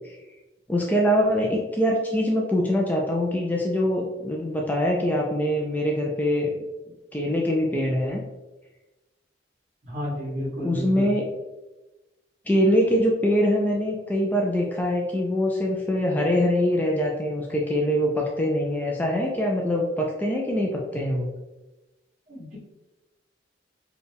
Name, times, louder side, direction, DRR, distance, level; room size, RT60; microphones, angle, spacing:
voice 1, 0.7-6.5 7.1-8.2 10.6-11.3 12.5-21.3, equal, 10° left, -1 dB, 0.3 m, -23 dB
voice 2, 9.9-11.1 22.3-22.6, left 1 dB, 45° right, -6 dB, 1.4 m, -31 dB
4.2 x 2.3 x 3.4 m, 1.1 s
head